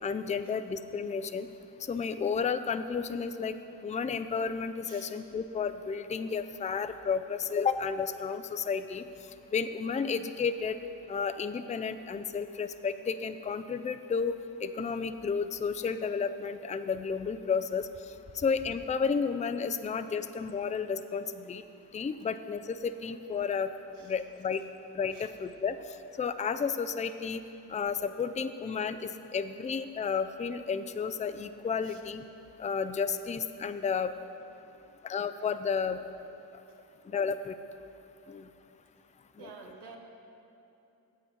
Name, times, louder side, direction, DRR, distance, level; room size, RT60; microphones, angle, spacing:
voice 1, 0.0-1.5 1.9-3.6 3.8-9.1 9.5-10.8 11.1-14.3 14.6-17.9 18.3-21.6 21.9-23.7 24.0-24.6 24.9-25.8 26.2-27.4 27.7-32.2 32.6-34.1 35.0-36.0 37.1-37.5 38.3-38.5 39.4-39.5, left 6 dB, 20° left, 11 dB, 0.3 m, -32 dB
voice 2, 34.6-35.0 35.9-36.0 36.6-37.2 39.4-40.0, right 4 dB, 85° right, 2 dB, 1.1 m, -52 dB
8.5 x 7.5 x 5.2 m, 2.8 s
cardioid pair, 50°, 41 cm